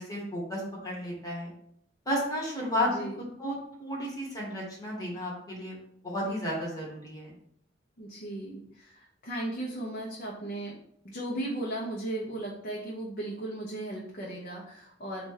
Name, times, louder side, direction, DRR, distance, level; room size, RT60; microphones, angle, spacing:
voice 1, 0.0-1.5 2.0-3.0 3.4-3.5 3.8-5.8 6.0-7.3, equal, 20° left, -4 dB, 1.5 m, -32 dB
voice 2, 2.8-3.2 8.0-10.8 11.0-15.3, right 1 dB, 50° left, -4 dB, 0.8 m, -36 dB
4.2 x 2.6 x 4.8 m, 0.69 s
head